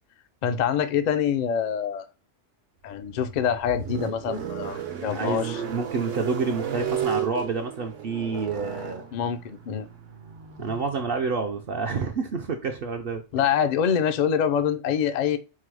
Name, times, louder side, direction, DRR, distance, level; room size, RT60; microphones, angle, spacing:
voice 1, 0.4-2.0 2.8-5.6 9.1-9.9 13.3-15.4, left 8 dB, 70° left, 10 dB, 0.4 m, -25 dB
sound 1, 2.9-13.2, right 7 dB, 80° right, 1.1 m, -35 dB
voice 2, 5.0-9.0 10.6-13.2, right 4 dB, 60° right, 3 dB, 0.6 m, -28 dB
4.6 x 2.0 x 4.5 m, 0.30 s
omnidirectional pair, 1.3 m